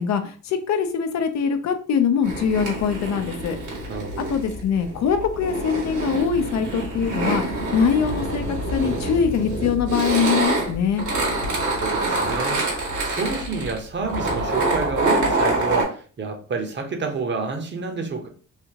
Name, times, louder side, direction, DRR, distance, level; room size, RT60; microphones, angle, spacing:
voice 1, 0.0-3.6 4.3-11.0, left 7 dB, 65° left, 0.6 m, -23 dB
sound 1, 2.2-15.8, right 2 dB, 75° right, 1.6 m, -26 dB
voice 2, 3.9-4.4 11.4-18.3, right 4 dB, 40° right, 0.8 m, -29 dB
3.3 x 2.8 x 2.8 m
cardioid pair, 90°, 30 cm